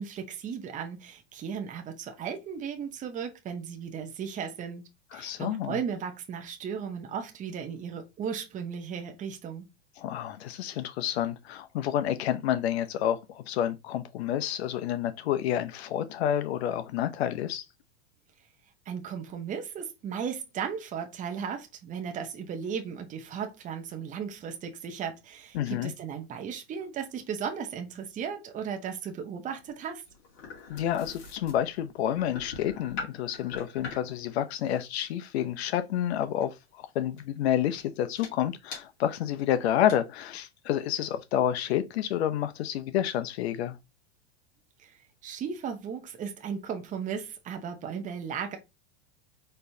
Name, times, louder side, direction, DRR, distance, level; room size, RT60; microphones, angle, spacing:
voice 1, 0.0-4.8 5.1-9.7 18.9-30.0 44.8-48.6, right 7 dB, 25° right, 0.8 m, -36 dB
voice 2, 5.1-5.8 10.0-17.6 25.5-25.9 30.7-43.8, left 11 dB, 75° left, 0.7 m, -29 dB
sound 1, 29.6-34.2 36.4-36.6 37.2-37.4 37.8-37.9 38.2-38.3 38.7-38.8 39.4-39.5 39.7-40.0, left 4 dB, 60° left, 2.2 m, -42 dB
4.4 x 3.2 x 2.7 m
supercardioid pair, 125°, 32 cm